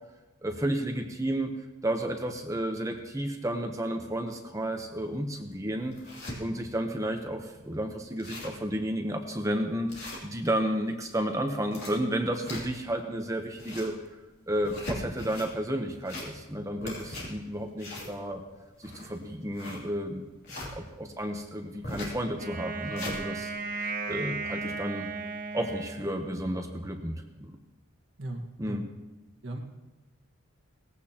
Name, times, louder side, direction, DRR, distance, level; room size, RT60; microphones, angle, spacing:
voice 1, 0.4-1.5 1.8-5.9 6.4-14.0 14.5-18.4 18.8-20.2 20.7-23.5 23.8-25.1 25.5-27.6 28.6-28.9, right 1 dB, 15° right, 4 dB, 0.9 m, -32 dB
sound 1, 5.0-5.1 5.6-6.4 6.9-7.0 7.3-7.4 7.8-7.9 8.1-8.7 9.1-9.2 9.9-10.7 11.5-12.9 13.4-14.0 14.5-15.5 15.9-16.5 16.8-20.7 21.8-22.2 22.6-23.2, left 1 dB, 50° left, 3.1 m, -39 dB
Wind instrument woodwind instrument, 22.4-26.6, right 4 dB, 40° right, 1.1 m, -36 dB
voice 2, 28.2-28.8 29.4-29.6, right 1 dB, 60° right, 2 dB, 1.7 m, -37 dB
19.0 x 15.0 x 2.9 m, 1.1 s
head